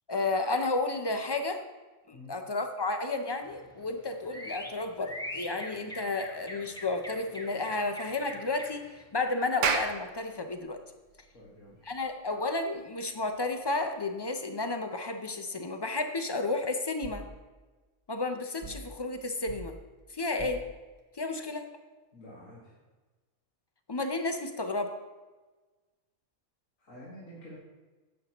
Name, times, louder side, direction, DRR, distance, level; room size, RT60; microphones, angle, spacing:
voice 1, 0.1-1.6 2.1-10.8 11.9-17.2 18.1-19.7 20.1-20.7 21.2-21.7 23.9-24.9, left 3 dB, 35° left, 6 dB, 0.4 m, -32 dB
sound 1, 3.4-9.0, equal, 5° left, 0.8 m, -44 dB
Clapping, 9.4-14.3, right 6 dB, 75° right, 1.1 m, -35 dB
voice 2, 11.3-11.8 22.1-22.8 26.8-27.6, left 1 dB, 80° left, -7 dB, 2.2 m, -48 dB
sound 2, 17.0-17.3 18.6-18.9 19.5-19.7 20.4-20.7, right 1 dB, 30° right, 0.8 m, -43 dB
11.5 x 8.2 x 3.0 m, 1.3 s
omnidirectional pair, 1.3 m